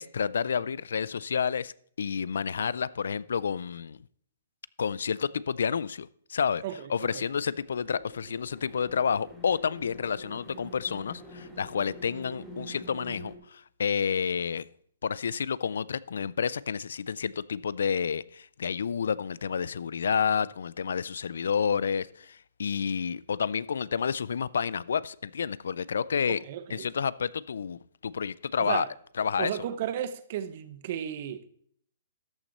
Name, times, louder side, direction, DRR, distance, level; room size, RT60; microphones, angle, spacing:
voice 1, 0.0-4.0 4.8-6.6 6.9-14.7 15.0-26.4 26.7-28.9 29.2-29.5, left 6 dB, 80° left, 0.4 m, -30 dB
voice 2, 6.6-7.3 26.3-26.9 28.6-28.9 29.4-31.5, right 10 dB, 45° right, 0.9 m, -34 dB
sound 1, 7.1-13.4, equal, ahead, 1.9 m, -46 dB
13.0 x 6.1 x 4.2 m
hypercardioid pair, 155°, 0 cm